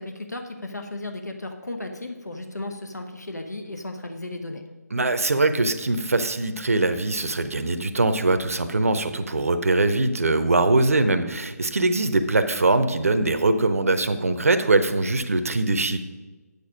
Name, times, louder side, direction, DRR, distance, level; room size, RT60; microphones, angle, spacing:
voice 1, 0.0-4.6, left 2 dB, 80° left, 5 dB, 0.9 m, -35 dB
voice 2, 4.9-16.0, right 2 dB, 60° right, 10 dB, 0.7 m, -22 dB
8.4 x 6.8 x 5.0 m, 1.2 s
figure-of-eight pair, 150°, 9 cm